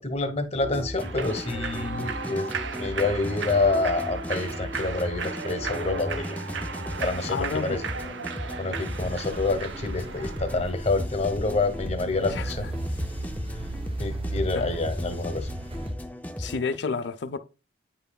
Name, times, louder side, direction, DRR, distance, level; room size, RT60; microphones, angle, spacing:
voice 1, 0.0-2.5 2.8-6.4 7.0-7.8 8.6-12.7 14.0-15.6, left 3 dB, 35° left, 1.0 m, -27 dB
sound 1, 0.6-16.8, left 1 dB, 10° left, 0.4 m, -36 dB
Human voice / Clapping / Cheering, 1.0-10.7, right 5 dB, 70° right, 0.6 m, -36 dB
voice 2, 7.3-7.8 12.3-12.7 14.5-14.7 16.4-17.4, left 4 dB, 65° left, 0.5 m, -31 dB
sound 2, 9.0-15.9, right 1 dB, 30° right, 0.7 m, -36 dB
9.0 x 5.6 x 2.3 m
head